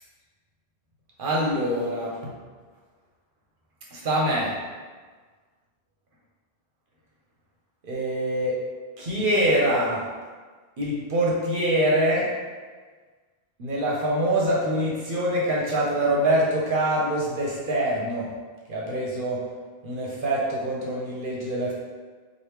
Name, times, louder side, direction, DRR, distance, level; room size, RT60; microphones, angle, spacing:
voice 1, 1.2-2.3 3.9-4.5 7.8-8.6 9.0-10.0 10.8-12.3 13.6-18.3 18.7-19.4 19.8-21.7, right 1 dB, 60° right, -4 dB, 0.8 m, -24 dB
3.1 x 2.5 x 3.2 m, 1.5 s
omnidirectional pair, 1.0 m